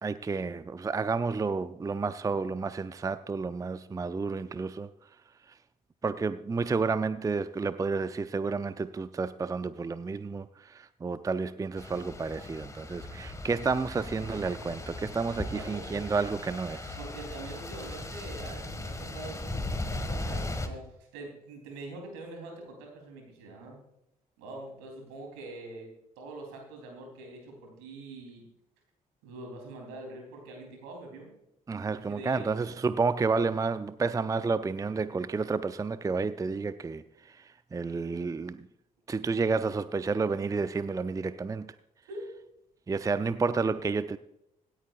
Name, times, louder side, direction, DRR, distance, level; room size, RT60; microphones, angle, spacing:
voice 1, 0.0-4.9 6.0-17.0 31.7-38.7 39.1-41.7 42.9-44.2, right 4 dB, 20° right, 0.5 m, -30 dB
sound 1, 11.8-20.7, left 2 dB, 15° left, 1.8 m, -38 dB
voice 2, 15.3-16.1 17.0-23.8 24.4-25.9 26.2-28.4 29.2-31.3 31.8-32.5 42.1-42.3, right 2 dB, 70° right, 3.5 m, -44 dB
26.0 x 8.9 x 2.5 m
figure-of-eight pair, 45°, 19 cm